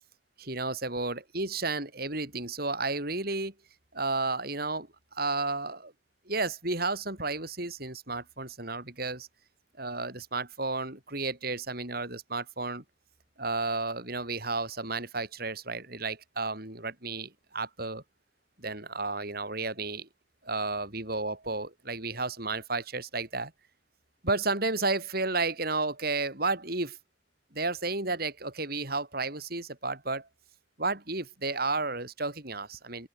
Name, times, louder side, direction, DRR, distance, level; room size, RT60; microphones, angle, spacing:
voice 1, 0.4-3.5 3.9-5.9 6.3-9.3 9.8-12.8 13.4-18.0 18.6-20.1 20.4-23.5 24.2-27.0 27.5-30.3 30.8-33.1, right 3 dB, 50° right, 6.5 m, -32 dB
open air
head